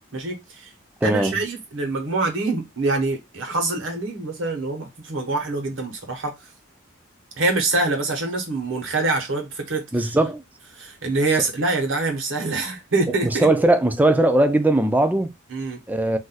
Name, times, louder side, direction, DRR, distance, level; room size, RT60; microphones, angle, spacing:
voice 1, 0.1-0.7 1.0-6.3 7.4-10.1 10.7-13.5 15.5-15.8, right 3 dB, 85° right, 1.0 m, -25 dB
voice 2, 1.0-1.4 9.9-10.4 13.2-15.3 15.9-16.2, right 1 dB, 10° right, 0.3 m, -19 dB
2.5 x 2.2 x 3.9 m
head